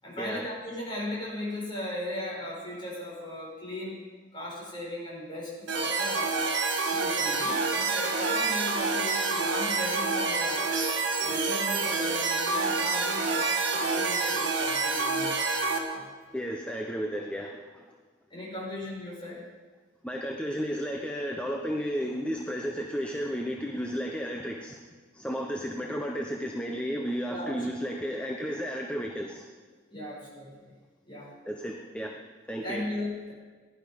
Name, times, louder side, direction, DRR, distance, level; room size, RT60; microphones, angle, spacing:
voice 1, 0.0-4.0 4.3-6.4 6.9-10.7 11.2-15.5 15.9-16.1 18.3-19.4 27.3-27.5 29.9-30.8 31.0-31.3 32.6-33.3, left 1 dB, 25° left, -4 dB, 5.9 m, -37 dB
sound 1, 5.7-15.8, right 3 dB, 70° right, 2.1 m, -27 dB
voice 2, 16.3-17.9 20.0-24.8 25.1-29.5 31.5-32.8, equal, 5° left, 1 dB, 0.9 m, -33 dB
19.0 x 11.5 x 5.3 m, 1.4 s
head